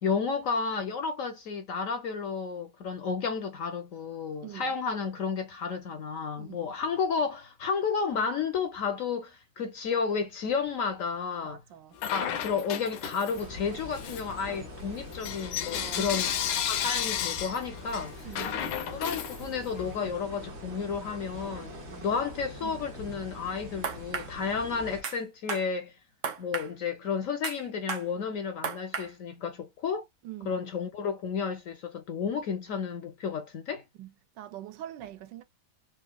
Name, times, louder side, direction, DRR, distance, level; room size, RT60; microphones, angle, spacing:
voice 1, 0.0-11.6 12.1-16.3 16.6-18.2 18.9-21.7 22.0-25.9 26.4-30.0 30.4-33.8, left 5 dB, 65° left, 0.9 m, -32 dB
voice 2, 4.4-4.7 6.4-6.7 11.4-12.0 15.7-16.3 18.2-18.6 21.9-22.1 22.6-22.9 30.2-30.6 34.0-35.4, right 12 dB, 85° right, 1.3 m, -44 dB
Bell / Coin (dropping), 12.0-13.5 13.9-19.9, left 9 dB, 85° left, 1.3 m, -33 dB
sound 1, 13.3-25.0, left 1 dB, 45° right, 1.1 m, -43 dB
sound 2, 23.8-24.3 25.0-25.2 25.5-25.7 26.2-26.7 27.4-27.6 27.9-28.1 28.6-29.1, right 6 dB, 60° right, 0.8 m, -33 dB
4.0 x 2.4 x 2.2 m
omnidirectional pair, 1.9 m